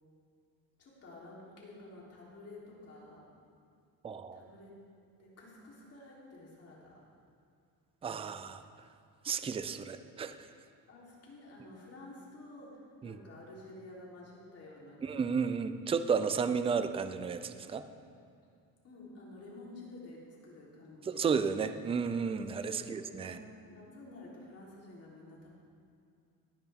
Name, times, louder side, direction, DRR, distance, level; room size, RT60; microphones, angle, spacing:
voice 1, 0.8-3.2 4.3-4.7 5.2-7.0 10.9-15.6 18.8-21.7 22.7-22.9 23.2-25.5, left 2 dB, 40° left, -5 dB, 3.5 m, -51 dB
voice 2, 4.0-4.4 8.0-8.6 9.2-10.5 13.0-13.2 15.0-17.9 21.1-23.4, right 6 dB, 15° right, 10 dB, 0.4 m, -33 dB
17.5 x 10.0 x 3.6 m, 2.4 s
cardioid pair, 125°, 39 cm